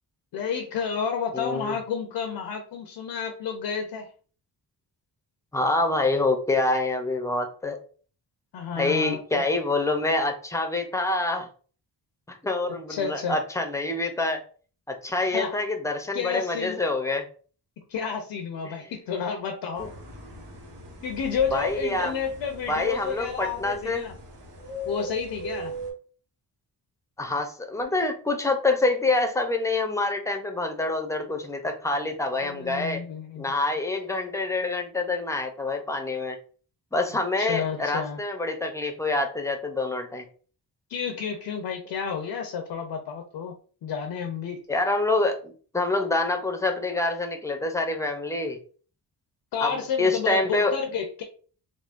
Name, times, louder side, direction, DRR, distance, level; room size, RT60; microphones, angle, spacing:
voice 1, 0.3-4.1 8.5-9.4 12.7-13.4 15.3-15.5 16.1-16.8 17.8-19.9 21.0-24.1 24.8-25.7 32.4-33.5 37.4-38.2 40.9-44.6 49.5-51.2, left 6 dB, 80° left, 4 dB, 0.6 m, -31 dB
voice 2, 1.3-1.8 5.5-7.8 8.8-11.5 12.3-14.4 14.9-17.3 18.6-18.7 21.5-22.1 22.7-24.0 27.2-33.0 33.4-36.4 36.9-40.2 44.7-48.6 49.6-50.7, left 2 dB, 10° left, 4 dB, 0.5 m, -26 dB
sound 1, 19.7-25.9, equal, 85° right, 1.0 m, -40 dB
3.6 x 2.0 x 2.4 m, 0.41 s
cardioid pair, 100°, 41 cm